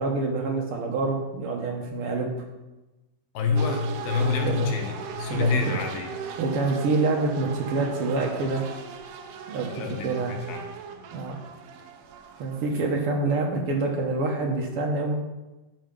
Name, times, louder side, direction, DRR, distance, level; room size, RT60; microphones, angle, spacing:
voice 1, 0.0-2.3 4.2-4.7 5.3-5.6 6.4-8.6 9.5-10.3 11.1-11.4 12.4-15.1, right 3 dB, 90° right, 0 dB, 1.2 m, -27 dB
voice 2, 3.3-6.2 9.6-10.7, left 5 dB, 75° left, 3 dB, 2.8 m, -27 dB
sound 1, 3.6-13.1, right 6 dB, 70° right, 2.1 m, -38 dB
11.0 x 5.8 x 5.3 m, 1.0 s
omnidirectional pair, 4.3 m